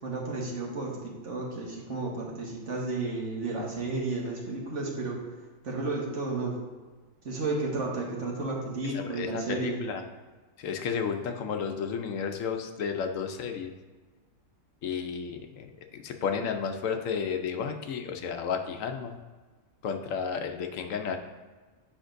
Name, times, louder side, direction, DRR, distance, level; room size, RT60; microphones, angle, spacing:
voice 1, 0.0-5.2 5.6-6.5 7.2-9.8, right 3 dB, 60° right, -2 dB, 1.6 m, -32 dB
voice 2, 8.8-10.0 10.6-13.7 14.8-19.2 19.8-21.2, left 6 dB, 80° left, 5 dB, 1.0 m, -32 dB
8.7 x 5.2 x 2.6 m, 1.3 s
omnidirectional pair, 1.4 m